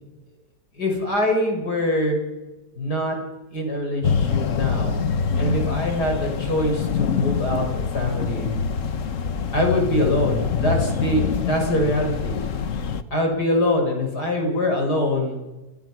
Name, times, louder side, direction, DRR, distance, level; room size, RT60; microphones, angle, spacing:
voice 1, 0.8-2.2 2.8-3.2 3.5-5.0 5.4-8.5 9.5-12.4 13.1-15.5, left 1 dB, 85° left, 2 dB, 6.6 m, -24 dB
sound 1, 4.0-13.0, left 6 dB, 55° left, 1.4 m, -25 dB
29.5 x 26.5 x 6.2 m, 1.1 s
omnidirectional pair, 1.7 m